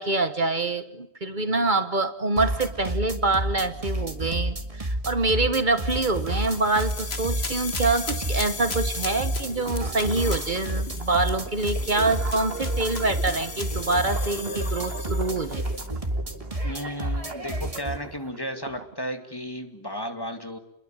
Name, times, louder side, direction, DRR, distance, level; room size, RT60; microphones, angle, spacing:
voice 1, 0.0-15.6, right 2 dB, 50° right, 12 dB, 1.4 m, -25 dB
sound 1, 2.4-18.0, right 1 dB, 35° right, 2.2 m, -30 dB
sound 2, 5.9-15.9, left 4 dB, 75° left, 2.1 m, -37 dB
sound 3, 9.4-18.9, right 4 dB, 70° right, 1.8 m, -40 dB
voice 2, 16.6-20.6, equal, 20° left, 7 dB, 2.3 m, -34 dB
29.5 x 22.0 x 8.9 m, 0.75 s
omnidirectional pair, 1.1 m